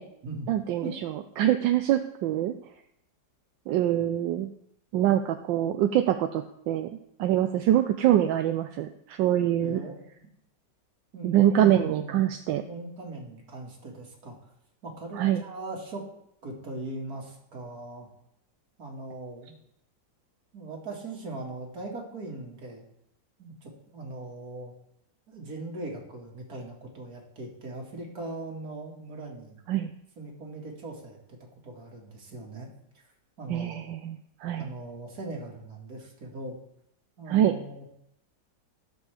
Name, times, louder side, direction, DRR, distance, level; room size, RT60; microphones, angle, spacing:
voice 1, 0.5-2.5 3.7-4.5 4.9-6.9 7.2-9.8 11.2-12.6 15.2-15.4 29.7-29.9 33.5-34.7 37.3-37.6, right 11 dB, 80° right, 7 dB, 1.3 m, -24 dB
voice 2, 9.6-10.1 11.1-12.2 12.7-14.5 14.8-16.0 16.4-18.1 18.8-19.5 20.5-22.8 23.4-24.7 25.3-29.6 30.2-31.4 31.6-32.7 33.4-33.9 34.6-36.6 37.2-37.9, right 2 dB, 55° right, 0 dB, 2.3 m, -40 dB
18.0 x 6.2 x 3.4 m, 0.76 s
omnidirectional pair, 2.0 m